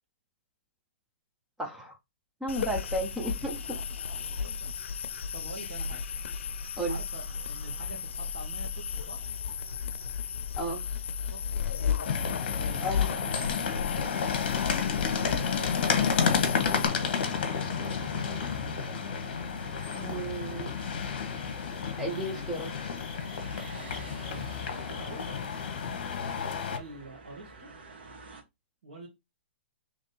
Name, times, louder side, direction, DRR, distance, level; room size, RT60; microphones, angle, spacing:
voice 1, 1.6-1.9 2.4-3.8 6.8-7.0 10.6-10.8 12.8-13.1 19.9-20.7 22.0-22.9, right 1 dB, 5° right, 0.5 m, -33 dB
sound 1, 2.5-16.9, left 7 dB, 90° left, 0.5 m, -34 dB
voice 2, 3.0-3.4 4.1-6.0 6.9-9.3 11.3-14.2 14.8-18.2 24.3-25.4 26.6-27.7 28.8-29.1, right 2 dB, 50° right, 1.5 m, -47 dB
sound 2, 10.8-28.4, right 4 dB, 65° right, 1.2 m, -49 dB
sound 3, 12.1-26.8, left 6 dB, 50° left, 1.0 m, -31 dB
3.5 x 3.1 x 4.1 m
hypercardioid pair, 180°, 6 cm